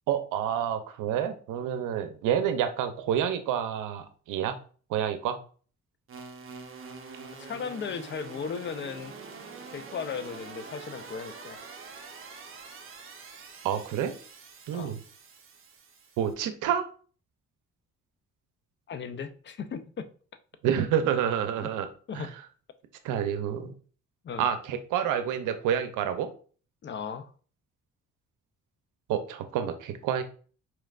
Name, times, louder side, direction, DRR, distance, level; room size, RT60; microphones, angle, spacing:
voice 1, 0.1-4.6 4.9-5.4 13.6-14.1 14.7-15.0 16.2-16.9 20.6-21.9 22.1-22.3 23.0-23.7 24.4-26.3 29.1-30.2, right 9 dB, 85° right, 9 dB, 0.6 m, -28 dB
sound 1, 6.1-16.3, right 4 dB, 45° right, 0.8 m, -45 dB
voice 2, 7.4-9.2 9.7-11.6 14.7-14.9 18.9-20.1 21.6-21.7 22.1-22.3 24.2-24.4 26.8-27.3, left 6 dB, 40° left, 11 dB, 0.5 m, -36 dB
4.4 x 3.2 x 2.4 m, 0.41 s
cardioid pair, 90°, 30 cm